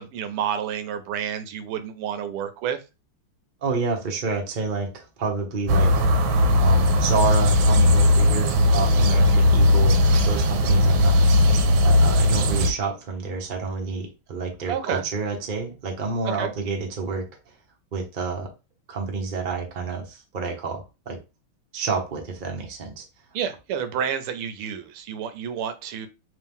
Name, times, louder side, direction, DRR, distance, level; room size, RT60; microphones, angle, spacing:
voice 1, 0.0-2.8 14.7-15.0 16.4-16.5 23.3-26.1, right 8 dB, 90° right, 10 dB, 1.6 m, -29 dB
voice 2, 3.6-6.0 6.6-11.2 11.8-17.3 17.9-18.5 18.9-21.2 21.7-23.1, right 4 dB, 50° right, 1 dB, 0.5 m, -29 dB
sound 1, 5.7-12.7, left 1 dB, 75° right, 1.3 m, -18 dB
3.5 x 3.0 x 3.5 m, 0.28 s
omnidirectional pair, 2.4 m